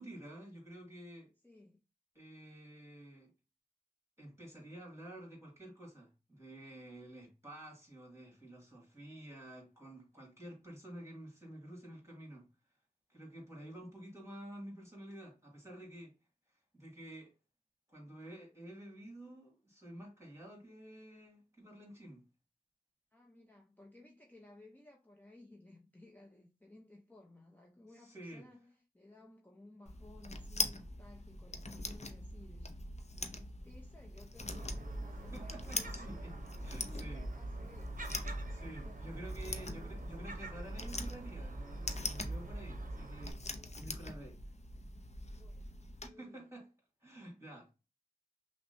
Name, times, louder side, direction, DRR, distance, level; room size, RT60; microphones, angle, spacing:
voice 1, 0.0-1.3 2.1-3.3 4.2-12.5 13.1-16.1 16.7-17.3 17.9-22.2 28.0-28.5 35.3-36.3 36.6-37.3 38.5-43.4 43.7-44.4 46.0-46.7 47.0-47.7, right 1 dB, 20° right, 2.2 m, -50 dB
voice 2, 1.4-1.8 23.1-32.9 33.1-36.5 36.8-38.2 38.8-39.2 39.8-40.1 43.6-43.9 45.3-46.5, left 2 dB, 10° left, 0.7 m, -58 dB
sound 1, 29.9-46.1, left 2 dB, 45° left, 0.6 m, -43 dB
Gull seagull, 34.4-43.3, right 1 dB, 60° right, 0.7 m, -43 dB
5.8 x 2.2 x 2.7 m
wide cardioid pair, 50°, 15 cm